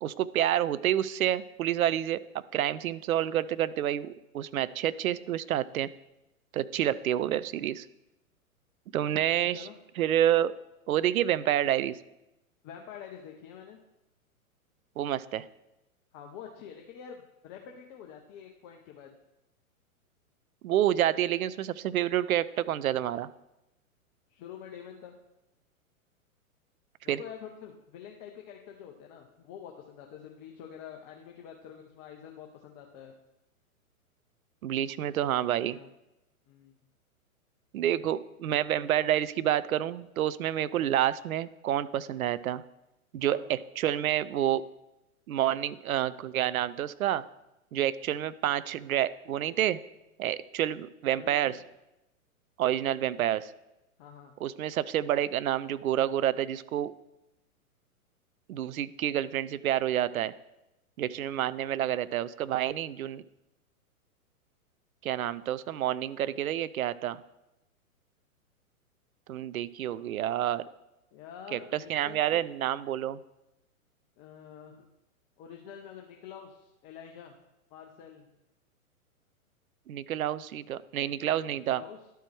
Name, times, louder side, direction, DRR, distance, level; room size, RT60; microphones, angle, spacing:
voice 1, 0.0-5.9 6.5-7.9 8.9-9.7 10.0-10.5 10.9-12.0 15.0-15.5 20.6-23.3 27.1-27.2 34.6-35.8 37.7-42.6 43.1-44.7 45.3-47.2 47.7-49.8 50.2-51.6 52.6-53.5 54.4-56.9 58.5-60.3 61.0-63.2 65.0-67.2 69.3-70.6 71.5-73.2 79.9-81.8, right 11 dB, 75° right, 17 dB, 0.5 m, -28 dB
voice 2, 9.1-9.8 12.6-13.8 16.1-19.1 24.3-25.1 27.0-33.1 35.6-35.9 36.5-36.7 40.7-40.9 43.3-43.4 51.1-51.6 54.0-54.4 69.9-70.1 71.1-72.5 74.2-74.9 75.4-77.3 77.7-78.3 81.7-82.0, left 8 dB, 25° left, 2 dB, 0.6 m, -47 dB
11.5 x 4.6 x 4.6 m, 0.93 s
hypercardioid pair, 120°, 43 cm